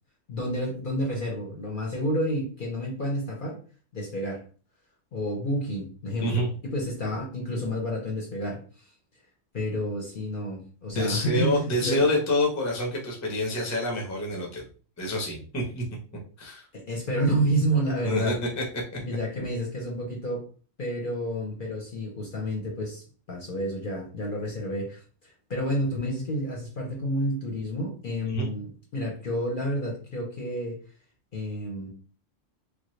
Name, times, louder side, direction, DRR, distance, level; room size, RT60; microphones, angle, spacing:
voice 1, 0.3-3.6 3.9-4.4 5.1-6.5 6.7-8.6 9.5-12.0 16.7-18.4 19.1-20.5 20.8-30.8 31.3-31.9, equal, 45° left, -1 dB, 0.8 m, -30 dB
voice 2, 10.9-14.6 15.0-15.8 16.4-16.7 18.0-18.6 28.3-28.5, left 1 dB, 15° left, 0 dB, 0.6 m, -27 dB
3.1 x 2.2 x 3.1 m, 0.38 s
omnidirectional pair, 1.3 m